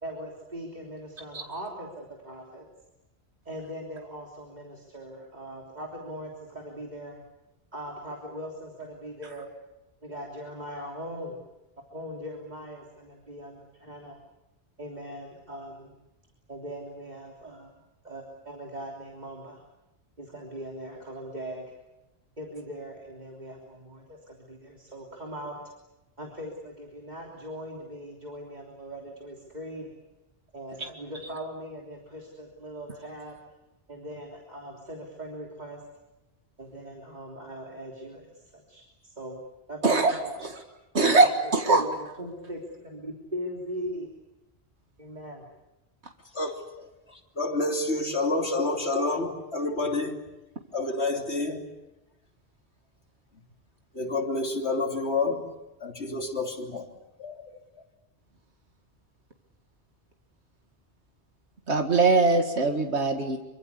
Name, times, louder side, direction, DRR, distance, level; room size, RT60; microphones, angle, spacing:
voice 1, 0.0-2.7 3.4-7.2 7.7-9.5 10.0-11.4 11.9-14.2 14.8-15.9 16.5-17.7 18.0-19.6 20.2-21.7 22.4-25.6 26.2-29.9 30.5-33.4 33.9-35.8 36.6-39.4 39.7-40.4 41.0-44.1 45.0-45.4, equal, 40° right, -1 dB, 3.5 m, -40 dB
voice 2, 39.8-40.2 40.4-40.6 40.9-41.8 61.7-63.4, right 3 dB, 85° right, 4 dB, 2.3 m, -21 dB
voice 3, 46.3-50.2 50.7-51.6 53.9-55.5 55.8-56.9 57.2-57.6, left 2 dB, 80° left, 2 dB, 3.4 m, -29 dB
25.5 x 24.5 x 8.3 m, 1.0 s
omnidirectional pair, 1.1 m